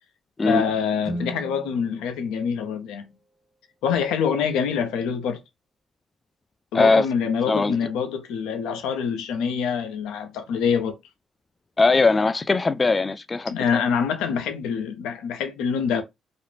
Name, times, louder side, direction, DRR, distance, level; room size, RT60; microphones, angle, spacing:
voice 1, 0.5-3.1 3.8-5.4 6.7-11.0 13.5-16.0, left 6 dB, 85° left, 0.5 m, -25 dB
Guitar, 1.0-3.6, equal, 20° right, 0.9 m, -38 dB
voice 2, 6.7-7.1 7.5-7.8 11.8-13.8, left 3 dB, 30° left, 0.3 m, -20 dB
2.4 x 2.0 x 3.1 m
supercardioid pair, 70°, 0 cm